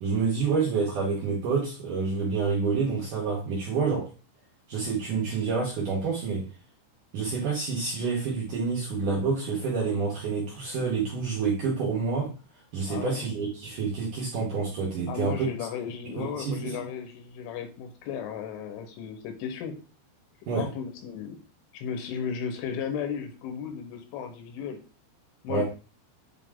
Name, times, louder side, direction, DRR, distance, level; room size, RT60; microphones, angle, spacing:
voice 1, 0.0-4.1 4.7-6.5 7.1-12.3 12.7-15.5 16.1-16.8 20.5-20.7 25.5-25.6, right 4 dB, 65° right, -4 dB, 2.1 m, -28 dB
voice 2, 12.9-13.3 15.1-19.8 20.5-21.4 21.7-24.8 25.4-25.6, left 7 dB, 85° left, 6 dB, 3.5 m, -35 dB
8.3 x 3.1 x 3.6 m, 0.35 s
omnidirectional pair, 5.4 m